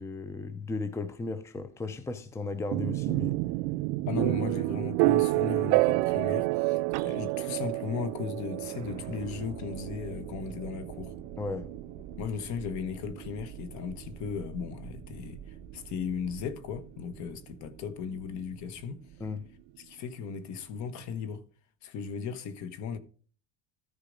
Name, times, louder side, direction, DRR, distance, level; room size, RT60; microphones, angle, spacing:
voice 1, 0.0-3.4 11.4-11.7 19.2-19.5, left 3 dB, 10° left, 0.6 m, -35 dB
sound 1, 2.7-16.5, right 20 dB, 85° right, 0.5 m, -30 dB
voice 2, 4.0-11.1 12.2-19.0 19.8-21.4 21.8-23.0, left 6 dB, 55° left, 1.2 m, -36 dB
sound 2, 8.5-19.6, right 6 dB, 15° right, 1.9 m, -48 dB
13.5 x 4.7 x 5.1 m
cardioid pair, 150°, 35 cm